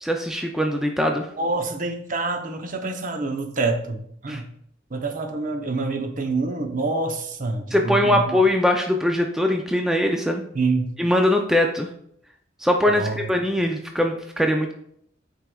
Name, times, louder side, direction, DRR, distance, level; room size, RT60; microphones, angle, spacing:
voice 1, 0.0-1.3 4.3-4.4 7.7-10.4 11.0-11.9 12.6-14.7, left 1 dB, 5° right, 2 dB, 0.4 m, -21 dB
voice 2, 1.4-4.5 4.9-8.4 10.5-10.9 12.9-13.2, right 3 dB, 45° right, 5 dB, 0.7 m, -26 dB
9.0 x 4.7 x 2.3 m, 0.70 s
head